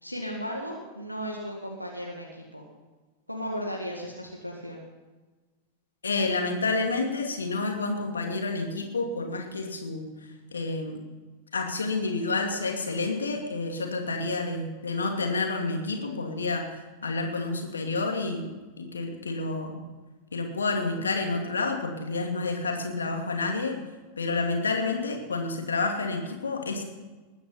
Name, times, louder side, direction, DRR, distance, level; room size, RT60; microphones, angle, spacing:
voice 1, 0.0-2.6 3.3-4.8, equal, 90° left, -2 dB, 2.0 m, -35 dB
voice 2, 6.0-10.1 10.5-11.0 11.5-19.8 20.3-23.8 24.2-26.8, left 3 dB, 75° left, 3 dB, 2.6 m, -29 dB
20.5 x 10.0 x 5.8 m, 1.3 s
figure-of-eight pair, 90°, 0 cm